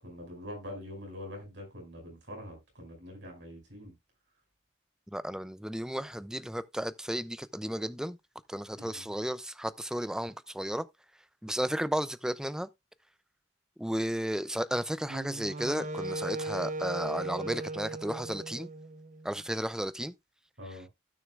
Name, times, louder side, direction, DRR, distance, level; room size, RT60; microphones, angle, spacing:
voice 1, 0.0-3.9 8.7-9.1 20.6-20.9, left 1 dB, 85° right, 5.8 m, -44 dB
voice 2, 5.1-8.2 8.5-10.9 11.4-12.7 13.8-18.7 19.2-20.1, equal, 5° right, 0.4 m, -33 dB
Wind instrument woodwind instrument, 15.1-19.3, right 2 dB, 40° right, 0.7 m, -37 dB
15.5 x 6.3 x 2.4 m
head